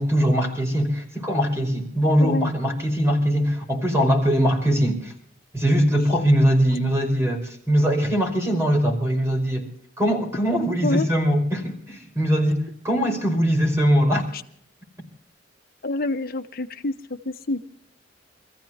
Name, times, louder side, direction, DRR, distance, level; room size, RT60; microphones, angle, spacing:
voice 1, 0.0-5.1 5.5-9.7 10.0-14.3, equal, 15° right, 5.2 m, -21 dB
voice 2, 2.2-2.5 10.8-11.1 14.3-14.4 15.8-16.9 17.2-17.7, left 2 dB, 50° left, 1.3 m, -27 dB
27.0 x 15.0 x 3.0 m
head